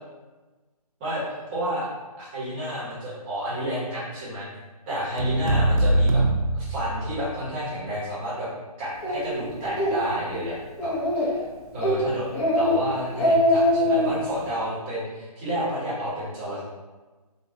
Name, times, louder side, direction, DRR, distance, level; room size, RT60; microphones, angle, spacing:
voice 1, 1.0-1.9 2.2-4.5 4.9-6.2 6.5-8.5 8.8-10.5 10.8-11.4 11.7-16.6, equal, 15° right, -8 dB, 0.7 m, -30 dB
sound 1, 5.2-7.5, right 1 dB, 60° right, 0.5 m, -22 dB
Speech, 9.0-9.2 9.6-9.9 10.3-10.4 10.8-11.4 11.8-12.0 12.3-12.7 13.0-14.1, left 1 dB, 45° left, 0.7 m, -22 dB
3.0 x 2.1 x 2.6 m, 1.2 s
figure-of-eight pair, 155°, 20 cm